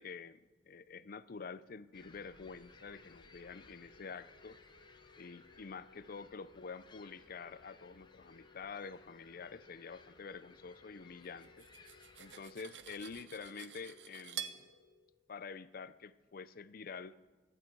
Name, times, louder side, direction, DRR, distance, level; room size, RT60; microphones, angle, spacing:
voice 1, 0.0-4.6 5.2-11.7 12.2-14.7 15.3-17.2, left 5 dB, 55° left, 16 dB, 0.5 m, -48 dB
sound 1, 1.9-12.5, left 3 dB, 25° left, 0.9 m, -62 dB
sound 2, 2.4-15.6, left 3 dB, 80° left, 2.1 m, -65 dB
Cutlery silverware, 11.4-14.6, right 10 dB, 80° right, 0.9 m, -47 dB
24.5 x 11.5 x 4.6 m, 1.3 s
head